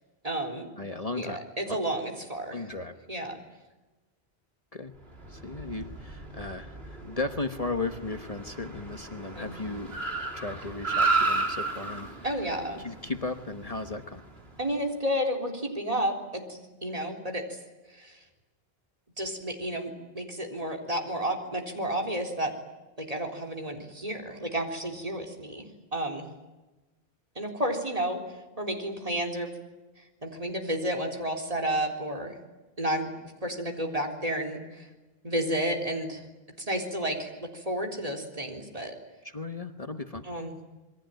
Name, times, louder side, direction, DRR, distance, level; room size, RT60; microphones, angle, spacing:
voice 1, 0.2-0.7 1.2-2.6 3.1-3.4 9.3-9.6 12.2-12.8 14.6-17.6 17.9-18.2 19.2-22.5 23.0-25.7 25.9-26.3 27.4-28.2 28.6-29.5 30.2-32.4 32.8-33.1 33.4-34.9 35.2-36.2 36.6-38.9 40.2-40.6, right 1 dB, 35° right, 4 dB, 3.9 m, -31 dB
voice 2, 0.8-1.4 1.7-1.8 2.5-2.9 4.7-4.9 5.3-10.0 10.3-12.5 12.8-14.2 39.2-40.2, left 3 dB, 35° left, 7 dB, 1.3 m, -35 dB
Car, 5.1-14.6, right 3 dB, 70° right, 3.8 m, -33 dB
27.5 x 22.0 x 9.2 m, 1.1 s
omnidirectional pair, 1.1 m